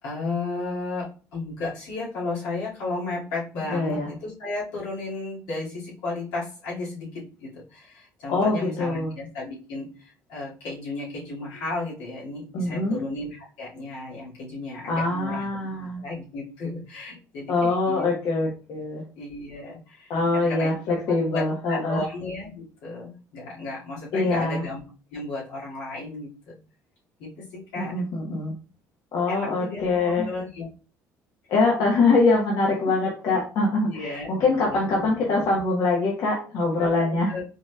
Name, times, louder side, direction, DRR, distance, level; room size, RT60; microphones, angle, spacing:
voice 1, 0.0-15.4 16.0-18.0 19.2-20.7 21.1-24.8 25.1-26.6 27.2-27.9 29.3-30.7 33.9-34.3 34.6-35.1 36.8-37.4, left 2 dB, 85° left, -6 dB, 2.3 m, -34 dB
voice 2, 3.7-4.1 8.3-9.1 12.5-13.1 14.9-16.0 17.5-19.0 20.1-22.0 24.1-24.7 27.8-28.5 29.1-30.3 31.5-37.3, left 3 dB, 65° left, -3 dB, 1.2 m, -23 dB
5.1 x 3.4 x 2.4 m, 0.37 s
supercardioid pair, 80°, 8 cm